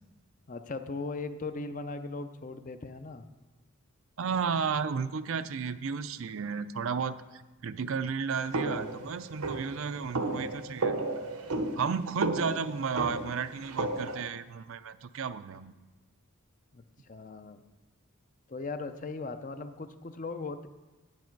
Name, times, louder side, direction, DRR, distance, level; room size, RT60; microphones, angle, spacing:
voice 1, 0.5-3.2 16.7-17.6 18.5-20.7, left 3 dB, 35° left, 10 dB, 0.5 m, -38 dB
voice 2, 4.2-10.9 11.8-15.7, right 6 dB, 65° right, 12 dB, 0.4 m, -33 dB
sound 1, 8.5-14.3, right 2 dB, 90° right, 1.0 m, -33 dB
9.6 x 9.6 x 4.6 m, 1.2 s
head